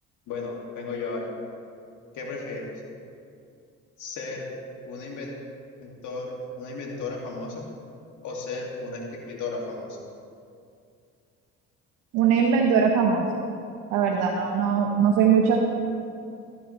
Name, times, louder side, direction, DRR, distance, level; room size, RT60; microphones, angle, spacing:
voice 1, 0.3-1.3 2.1-2.7 4.0-4.5 4.8-5.3 5.8-7.7 8.2-10.0, left 3 dB, 75° left, -1 dB, 2.4 m, -34 dB
voice 2, 12.1-13.4 13.9-15.6, right 6 dB, 90° right, 1 dB, 1.0 m, -21 dB
14.5 x 9.9 x 3.2 m, 2.4 s
supercardioid pair, 75°, 31 cm